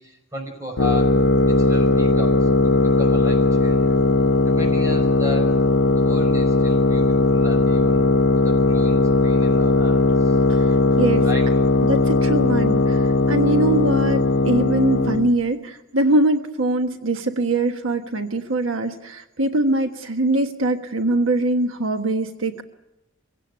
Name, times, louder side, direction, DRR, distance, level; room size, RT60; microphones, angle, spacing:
voice 1, 0.0-4.0 4.4-5.5 5.9-8.0 8.4-10.4 11.2-11.5, left 1 dB, 15° right, 3 dB, 5.6 m, -35 dB
sound 1, 0.8-15.3, left 2 dB, 70° left, 0.8 m, -18 dB
voice 2, 10.5-11.2 11.9-22.6, right 2 dB, 85° right, 7 dB, 1.3 m, -22 dB
23.5 x 16.5 x 9.6 m, 0.90 s
head